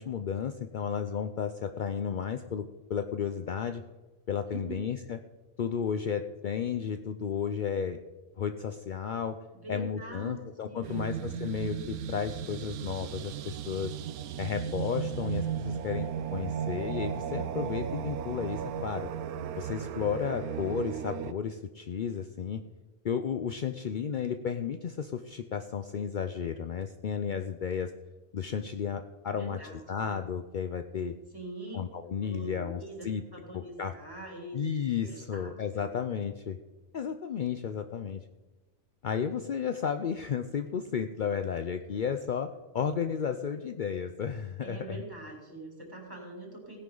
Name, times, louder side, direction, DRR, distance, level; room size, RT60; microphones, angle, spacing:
voice 1, 0.0-3.8 4.3-5.2 5.6-8.0 8.4-9.4 9.7-13.9 14.4-19.1 19.6-22.6 23.0-27.9 28.3-31.1 31.7-33.2 33.5-33.9 34.5-36.6 36.9-38.2 39.0-45.0, left 7 dB, 65° left, 8 dB, 0.4 m, -33 dB
voice 2, 4.5-4.9 9.5-11.2 29.3-30.1 31.3-31.8 32.2-34.6 34.9-35.9 44.6-46.8, right 2 dB, 15° right, -2 dB, 3.3 m, -44 dB
sound 1, 10.8-21.3, right 8 dB, 85° right, 1.1 m, -35 dB
17.0 x 10.5 x 3.9 m, 1.2 s
omnidirectional pair, 1.5 m